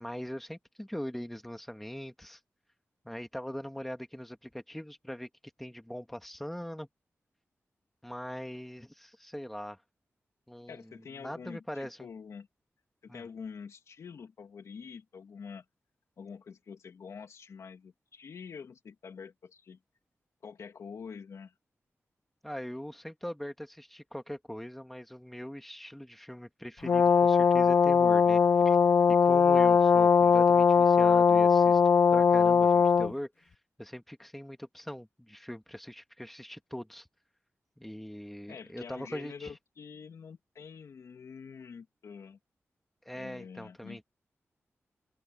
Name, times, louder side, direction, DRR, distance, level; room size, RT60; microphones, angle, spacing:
voice 1, 0.0-2.4 3.0-5.3 5.6-6.9 8.0-9.8 10.5-12.1 13.1-13.3 22.4-28.8 29.1-31.8 32.1-37.1 37.8-39.5 43.1-44.0, equal, 5° left, 1.9 m, -41 dB
voice 2, 10.7-12.5 13.0-15.6 16.2-19.8 20.4-21.5 38.5-42.4 43.1-44.0, left 6 dB, 80° left, 2.5 m, -46 dB
Brass instrument, 26.8-33.1, left 6 dB, 50° left, 0.3 m, -21 dB
open air
wide cardioid pair, 175°, 5 cm